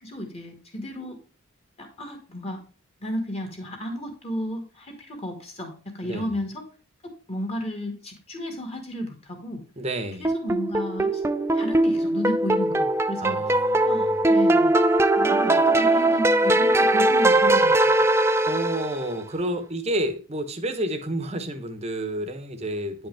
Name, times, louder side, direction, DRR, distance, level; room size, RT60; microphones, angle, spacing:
voice 1, 0.0-1.2 1.8-2.6 3.0-6.7 7.0-9.6 10.2-11.2 11.5-13.4 13.9-14.8 15.2-18.0, left 1 dB, 30° left, 2.1 m, -33 dB
voice 2, 9.8-10.3 13.2-14.2 18.5-23.1, right 1 dB, 30° right, 1.0 m, -30 dB
sound 1, 10.2-19.1, right 1 dB, 10° right, 0.4 m, -20 dB
9.7 x 5.2 x 3.4 m
head